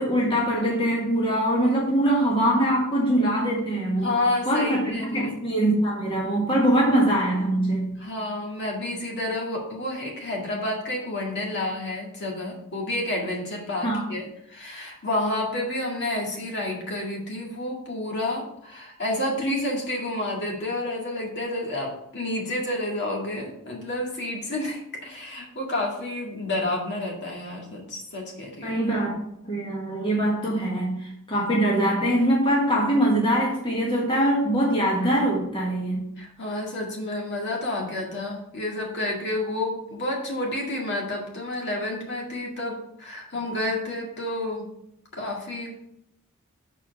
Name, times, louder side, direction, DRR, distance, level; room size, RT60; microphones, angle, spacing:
voice 1, 0.0-4.1 4.5-8.0 13.8-14.1 28.6-29.2 29.4-36.1, right 1 dB, 25° left, -3 dB, 1.4 m, -23 dB
voice 2, 4.0-5.4 8.0-28.8 36.2-44.7 45.1-45.7, left 1 dB, 55° left, -1 dB, 2.0 m, -30 dB
6.8 x 4.4 x 5.1 m, 0.78 s
head